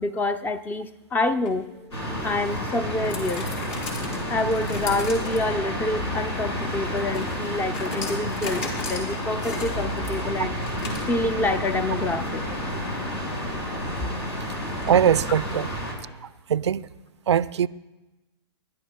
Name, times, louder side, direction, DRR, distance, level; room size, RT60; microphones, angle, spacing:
voice 1, 0.0-1.7 2.2-3.5 4.3-10.5 11.1-12.4, left 2 dB, 15° left, 0.6 m, -27 dB
sound 1, 1.3-15.2, left 3 dB, 50° left, 4.3 m, -36 dB
sound 2, 1.9-15.9, equal, 90° left, 5.4 m, -31 dB
voice 2, 14.9-15.7 16.2-16.9 17.3-17.7, right 8 dB, 85° right, 0.4 m, -22 dB
28.5 x 11.5 x 2.2 m
hypercardioid pair, 125°, 14 cm